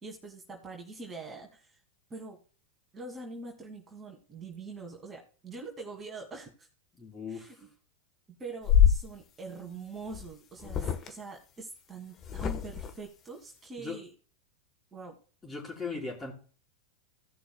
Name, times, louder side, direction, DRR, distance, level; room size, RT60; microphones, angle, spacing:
voice 1, 0.0-1.8 2.1-2.4 2.9-6.7 7.3-7.7 8.3-14.1 14.9-15.2, right 3 dB, 20° right, 1 dB, 2.3 m, -44 dB
voice 2, 7.0-7.5 13.8-14.0 15.4-16.3, left 4 dB, 15° left, 0 dB, 4.4 m, -38 dB
sound 1, 8.6-9.0 10.1-10.3 10.6-11.1 12.2-12.9, left 9 dB, 35° left, 1.2 m, -24 dB
17.0 x 6.2 x 2.3 m, 0.39 s
hypercardioid pair, 105°, 0 cm